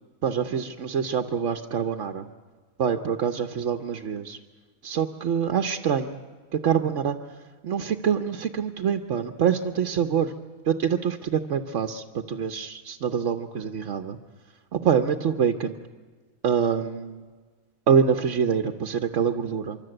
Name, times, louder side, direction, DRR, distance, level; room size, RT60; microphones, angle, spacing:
voice 1, 0.2-2.3 2.8-4.4 4.8-6.2 6.5-7.2 7.6-10.3 10.6-14.2 14.7-15.8 16.4-17.3 17.9-19.8, right 7 dB, 60° right, 7 dB, 1.2 m, -25 dB
25.0 x 24.5 x 7.8 m, 1.5 s
omnidirectional pair, 1.5 m